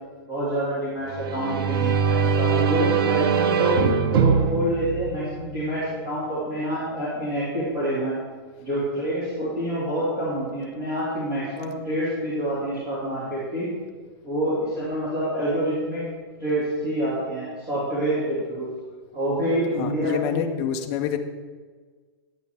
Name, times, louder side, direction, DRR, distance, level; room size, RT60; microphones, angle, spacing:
voice 1, 0.3-3.8 4.1-8.2 8.6-13.7 14.2-16.0 16.4-18.7 19.1-20.4, right 1 dB, 25° right, -9 dB, 2.3 m, -27 dB
sound 1, 1.1-5.8, right 6 dB, 65° right, 0.6 m, -22 dB
voice 2, 19.8-21.2, left 9 dB, 25° left, 5 dB, 0.5 m, -27 dB
9.3 x 8.9 x 3.4 m, 1.5 s
supercardioid pair, 175°, 13 cm